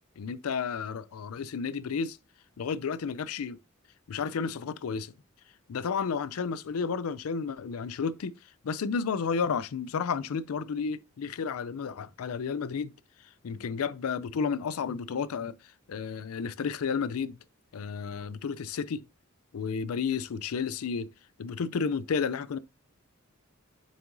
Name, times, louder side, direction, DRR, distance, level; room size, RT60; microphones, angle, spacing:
voice 1, 0.2-2.2 2.6-3.6 4.1-5.1 5.7-8.3 8.6-12.9 13.4-15.5 15.9-17.4 17.7-19.1 19.5-21.1 21.4-22.6, left 6 dB, 85° left, 0.4 m, -32 dB
7.2 x 5.9 x 2.6 m
head